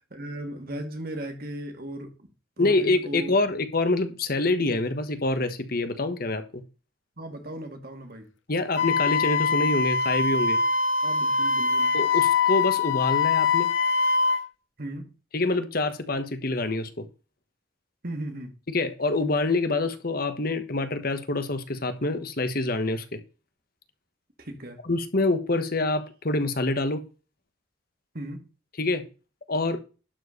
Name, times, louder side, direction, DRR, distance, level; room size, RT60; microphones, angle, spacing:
voice 1, 0.1-2.3 2.6-3.3 7.2-8.3 11.0-11.9 14.8-15.1 18.0-18.5 24.4-24.8 28.1-28.4, right 1 dB, 50° right, 2.2 m, -36 dB
voice 2, 2.6-6.6 8.5-10.6 11.9-13.7 15.3-17.1 18.7-23.0 24.8-27.0 28.8-29.0 29.5-29.8, left 2 dB, 50° left, 1.3 m, -26 dB
Wind instrument woodwind instrument, 8.8-14.4, left 4 dB, 75° left, 1.1 m, -23 dB
11.5 x 4.6 x 6.6 m
head